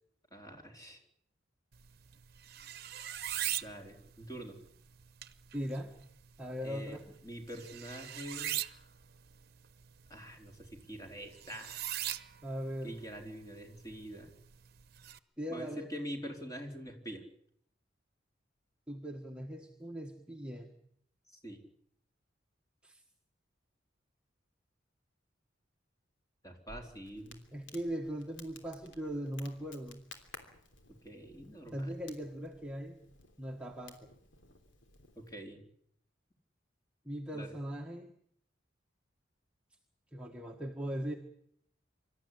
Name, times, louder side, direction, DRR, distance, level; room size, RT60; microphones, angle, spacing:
voice 1, 0.3-1.0 3.6-4.6 6.6-8.5 10.1-11.8 12.8-14.3 15.5-17.2 21.4-21.6 26.4-27.4 31.0-31.9 35.2-35.6 37.3-37.5, equal, 20° left, 2 dB, 4.2 m, -45 dB
sound 1, 1.7-15.2, right 12 dB, 55° right, 1.0 m, -43 dB
voice 2, 5.5-5.9 6.4-7.1 12.4-13.1 15.4-15.9 18.9-20.8 22.8-23.0 27.5-30.0 31.7-33.0 33.4-34.1 37.1-38.1 40.1-41.1, equal, 5° right, 0 dB, 1.6 m, -39 dB
Crackle, 26.7-35.4, left 3 dB, 75° left, 3.3 m, -56 dB
25.5 x 13.5 x 9.9 m, 0.69 s
head